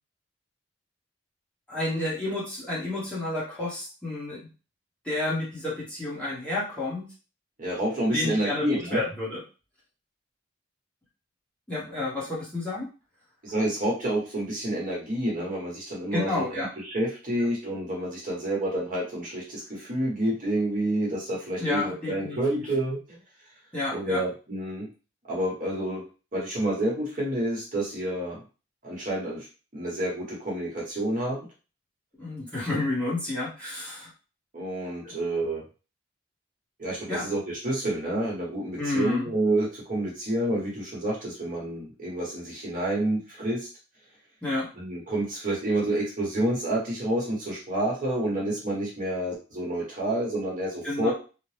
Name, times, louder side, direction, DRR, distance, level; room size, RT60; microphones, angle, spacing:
voice 1, 1.7-4.5 5.0-7.1 8.1-9.4 11.7-12.9 16.1-16.7 21.6-22.6 23.7-24.2 32.2-34.1 35.0-35.1 37.1-37.2 38.8-39.3 44.4-44.7 50.8-51.1, left 2 dB, 5° left, -8 dB, 1.0 m, -30 dB
voice 2, 7.6-9.0 13.4-16.4 16.8-23.2 23.9-24.9 25.3-26.0 26.3-28.4 28.8-29.5 29.7-31.5 34.5-35.6 36.8-43.7 44.7-51.1, right 1 dB, 40° right, -4 dB, 1.0 m, -29 dB
2.8 x 2.1 x 3.2 m, 0.34 s
head